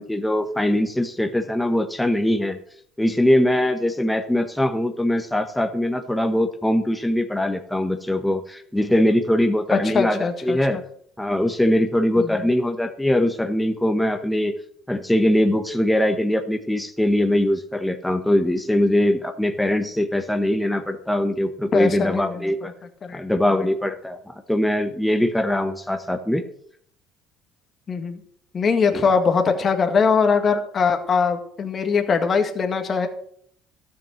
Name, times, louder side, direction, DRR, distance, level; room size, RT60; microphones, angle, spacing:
voice 1, 0.0-2.6 3.0-10.8 11.2-14.5 14.9-22.7 23.1-26.4 28.9-29.0, left 1 dB, 5° left, 6 dB, 1.3 m, -22 dB
voice 2, 9.7-10.8 12.2-12.4 21.7-22.5 23.0-23.2 27.9-28.2 28.5-33.1, left 5 dB, 40° left, 6 dB, 2.0 m, -21 dB
13.0 x 7.6 x 6.5 m, 0.62 s
supercardioid pair, 85°, 0 cm